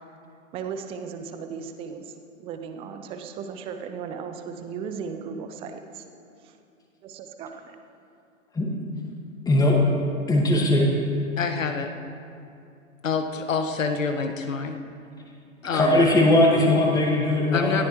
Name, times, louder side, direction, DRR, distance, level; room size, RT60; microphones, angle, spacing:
voice 1, 0.5-2.1 2.4-6.0 6.4-6.5 7.0-7.8, right 6 dB, 15° right, 6 dB, 0.6 m, -36 dB
voice 2, 9.5-9.8 10.3-10.9 15.7-17.9, left 1 dB, 10° left, -2 dB, 1.9 m, -19 dB
voice 3, 11.4-11.9 13.0-14.8 15.6-16.0 17.5-17.9, left 5 dB, 65° left, 6 dB, 1.1 m, -27 dB
18.5 x 13.5 x 3.2 m, 2.5 s
figure-of-eight pair, 115°, 41 cm